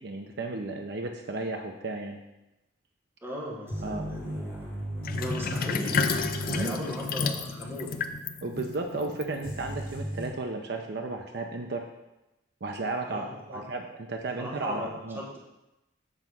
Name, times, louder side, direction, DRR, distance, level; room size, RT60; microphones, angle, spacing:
voice 1, 0.0-2.2 3.8-4.1 6.5-6.8 8.4-11.9 12.6-15.2, right 2 dB, 60° right, 3 dB, 0.6 m, -34 dB
voice 2, 3.2-4.6 5.2-7.9 13.0-13.7 14.4-15.4, equal, 15° right, -3 dB, 1.2 m, -38 dB
sound 1, 3.7-7.4 7.7-7.8 9.4-10.3, equal, 15° left, 2.6 m, -36 dB
Sink (filling or washing), 5.0-9.8, left 5 dB, 50° left, 0.5 m, -31 dB
7.8 x 4.0 x 6.0 m, 0.94 s
head